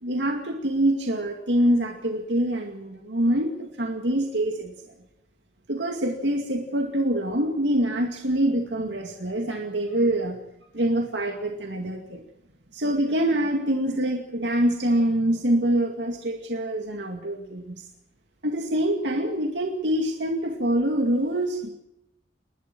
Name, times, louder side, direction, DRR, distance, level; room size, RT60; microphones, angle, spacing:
voice 1, 0.0-4.7 5.7-10.4 10.7-12.2 12.7-17.8 18.4-21.7, right 1 dB, 90° right, 3 dB, 2.3 m, -25 dB
29.0 x 12.5 x 7.7 m, 0.87 s
head